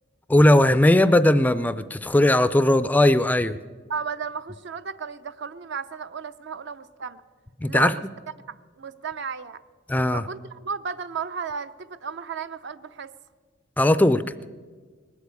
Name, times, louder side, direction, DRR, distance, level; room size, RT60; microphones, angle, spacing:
voice 1, 0.3-3.6 7.6-7.9 9.9-10.2 13.8-14.2, left 1 dB, 10° left, 14 dB, 0.3 m, -18 dB
voice 2, 3.9-7.2 7.6-8.0 8.5-9.6 10.1-13.1, right 6 dB, 65° right, 12 dB, 0.6 m, -34 dB
20.0 x 8.1 x 8.3 m, 1.5 s
head